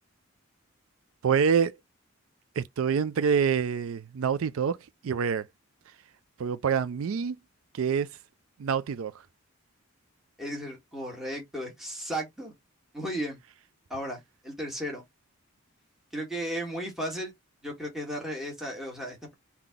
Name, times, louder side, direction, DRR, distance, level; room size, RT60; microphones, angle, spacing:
voice 1, 1.2-1.8 2.6-4.8 5.0-5.5 6.4-7.4 7.7-8.1 8.6-9.1, right 6 dB, 75° right, 0.4 m, -26 dB
voice 2, 10.4-12.5 12.9-13.4 13.9-15.0 16.1-17.3 17.6-19.3, equal, ahead, 1.6 m, -35 dB
3.8 x 2.8 x 3.5 m
head